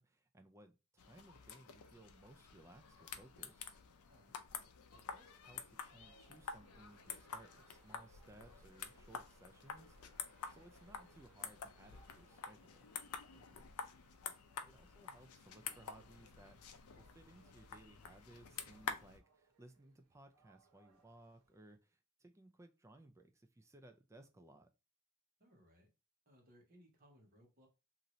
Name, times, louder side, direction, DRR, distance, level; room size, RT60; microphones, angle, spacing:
voice 1, 0.0-3.7 4.9-12.9 14.6-24.7, right 1 dB, 15° right, 0.3 m, -62 dB
sound 1, 1.0-19.2, left 6 dB, 80° left, 0.4 m, -49 dB
Train, 5.1-21.8, right 3 dB, 70° right, 0.6 m, -71 dB
voice 2, 13.3-13.6 25.4-25.9 26.3-27.7, equal, 40° right, 1.0 m, -66 dB
2.7 x 2.5 x 3.0 m
head